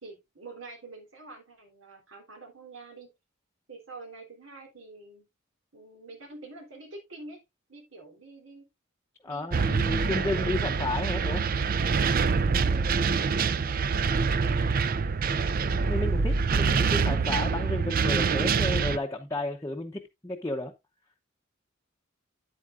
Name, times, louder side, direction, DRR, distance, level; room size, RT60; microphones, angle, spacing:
voice 1, 0.0-3.1 3.7-5.3 5.7-7.4 7.7-8.7 9.3-10.7 12.5-13.4 13.7-14.9, right 3 dB, 90° right, 3.4 m, -47 dB
voice 2, 9.2-11.4 15.7-20.7, left 2 dB, 15° left, 0.8 m, -32 dB
sound 1, 9.5-19.0, right 5 dB, 45° right, 0.5 m, -25 dB
9.7 x 8.4 x 2.5 m
head